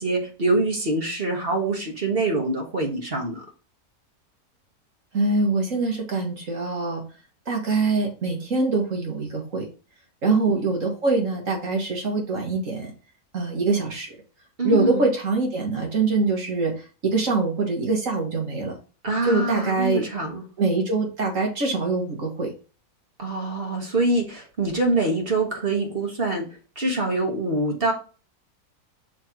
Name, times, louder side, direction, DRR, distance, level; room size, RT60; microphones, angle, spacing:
voice 1, 0.0-3.4 10.3-10.4 14.6-15.1 19.0-20.4 23.2-26.5 26.8-27.9, right 2 dB, 40° right, 0 dB, 1.7 m, -24 dB
voice 2, 5.1-7.0 7.5-9.6 10.2-12.9 13.3-14.1 14.6-16.7 17.0-18.7 19.2-20.0 20.6-22.5, right 3 dB, 55° right, 0 dB, 2.1 m, -24 dB
6.5 x 3.4 x 4.5 m, 0.34 s
omnidirectional pair, 1.6 m